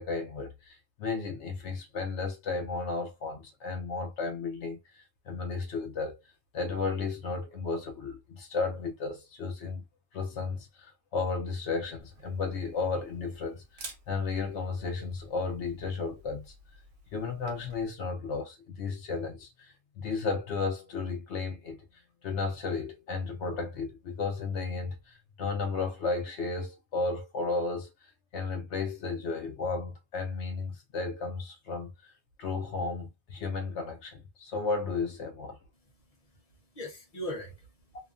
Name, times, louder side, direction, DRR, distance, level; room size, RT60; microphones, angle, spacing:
voice 1, 0.0-6.2 6.5-9.8 10.1-16.5 17.1-21.8 22.2-32.1 32.4-35.6, left 4 dB, 65° left, 0.9 m, -34 dB
Camera, 12.0-17.8, right 3 dB, 60° right, 1.1 m, -51 dB
voice 2, 35.7-38.0, equal, 30° left, 0.9 m, -42 dB
3.0 x 2.1 x 2.4 m
omnidirectional pair, 1.3 m